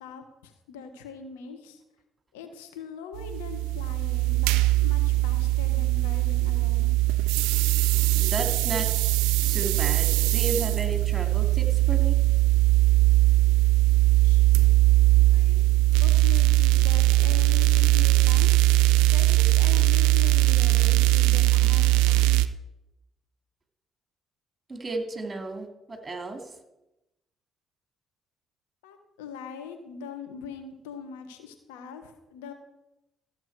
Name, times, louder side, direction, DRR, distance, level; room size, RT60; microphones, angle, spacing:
voice 1, 0.0-1.8 2.3-6.9 14.2-14.8 15.3-18.5 19.1-22.4 28.8-32.5, left 6 dB, 85° left, 6 dB, 1.2 m, -42 dB
sound 1, 3.1-22.5, right 18 dB, 80° right, 0.4 m, -21 dB
voice 2, 8.1-8.9 9.5-12.1 24.7-26.6, right 2 dB, 25° right, 4 dB, 2.4 m, -33 dB
14.0 x 7.2 x 4.7 m, 0.94 s
hypercardioid pair, 55°, 0 cm